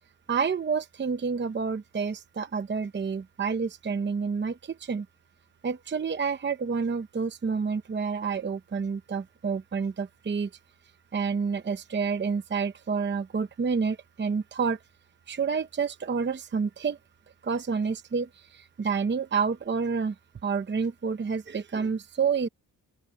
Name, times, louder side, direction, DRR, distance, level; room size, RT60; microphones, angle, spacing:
voice 1, 0.3-5.1 5.6-10.5 11.1-14.8 15.3-17.0 17.4-20.1 20.4-22.5, right 5 dB, 30° right, 0.8 m, -29 dB
open air
wide cardioid pair, 145°, 38 cm